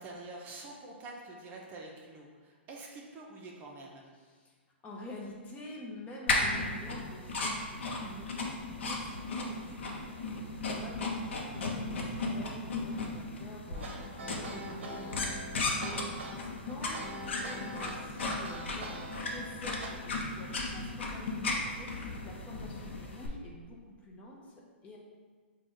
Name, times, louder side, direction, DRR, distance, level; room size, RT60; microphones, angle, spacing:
voice 1, 0.0-4.1 10.6-10.9 15.5-15.8, right 2 dB, 30° right, -1 dB, 0.6 m, -47 dB
voice 2, 4.8-15.4 15.8-25.0, left 1 dB, 20° left, -2 dB, 0.7 m, -48 dB
sound 1, 6.3-23.3, left 2 dB, 70° left, 0.7 m, -36 dB
sound 2, 13.7-19.9, right 1 dB, 70° right, 0.7 m, -43 dB
4.9 x 2.3 x 3.6 m, 1.5 s
hypercardioid pair, 120°, 7 cm